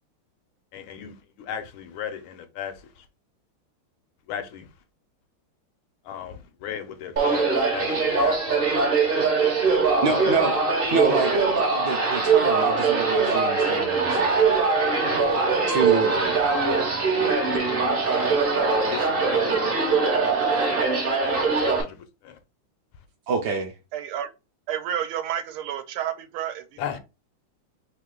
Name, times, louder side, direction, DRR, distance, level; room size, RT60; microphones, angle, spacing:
voice 1, 0.7-2.7 4.3-4.7 6.1-9.2 10.1-10.4 10.9-11.2 16.1-16.8 17.1-18.4 18.8-19.5 21.2-21.4 21.7-22.0 22.2-22.3 26.8-27.0, left 9 dB, 80° left, 1.4 m, -36 dB
sound 1, 7.2-21.8, right 4 dB, 55° right, 0.6 m, -22 dB
voice 2, 10.0-10.6 10.9-14.4 15.7-16.2 23.3-23.8, right 5 dB, 70° right, 1.0 m, -27 dB
voice 3, 23.9-24.3 24.7-27.0, right 10 dB, 90° right, 1.5 m, -30 dB
3.6 x 2.8 x 3.6 m
omnidirectional pair, 2.3 m